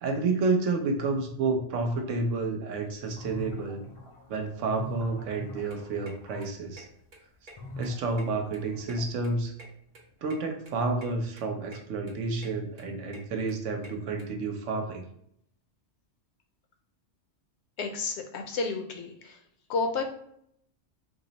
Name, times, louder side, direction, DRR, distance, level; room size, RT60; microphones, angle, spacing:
voice 1, 0.0-3.9 4.3-6.9 7.8-9.5 10.2-15.0, right 3 dB, 90° right, 4 dB, 1.0 m, -30 dB
sound 1, 2.9-6.5 7.6-9.3, left 1 dB, 35° left, 0.6 m, -43 dB
sound 2, 5.7-14.2, right 1 dB, 50° right, 0.8 m, -52 dB
voice 2, 17.8-19.4 19.7-20.0, left 4 dB, 70° left, 5 dB, 0.8 m, -31 dB
3.6 x 2.0 x 3.9 m, 0.71 s
omnidirectional pair, 1.2 m